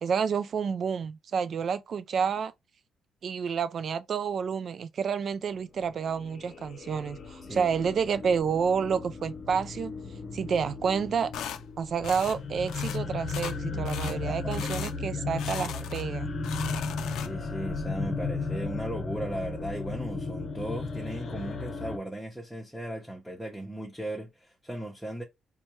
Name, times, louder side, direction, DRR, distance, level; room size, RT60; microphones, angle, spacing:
voice 1, 0.0-2.5 3.2-9.9 10.3-11.3 11.8-16.3, right 6 dB, 55° right, 0.4 m, -29 dB
sound 1, 5.7-22.0, left 4 dB, 45° left, 0.7 m, -35 dB
voice 2, 7.4-7.7 13.7-14.7 15.0-16.0 17.1-25.2, right 1 dB, ahead, 0.9 m, -38 dB
sound 2, 11.3-11.6 12.0-12.4 12.7-13.0 13.3-13.6 13.8-14.2 14.5-14.9 15.4-16.1 16.4-17.5, left 9 dB, 80° left, 0.4 m, -38 dB
4.3 x 2.3 x 3.1 m
cardioid pair, 90°, 0 cm